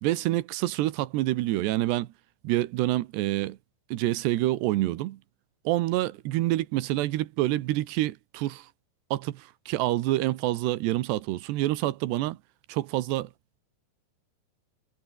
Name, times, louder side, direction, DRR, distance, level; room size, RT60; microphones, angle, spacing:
voice 1, 0.0-2.1 2.4-3.6 3.9-5.2 5.6-8.7 9.1-12.4 12.7-13.3, right 16 dB, 90° right, 3.3 m, -27 dB
omnidirectional pair, 4.7 m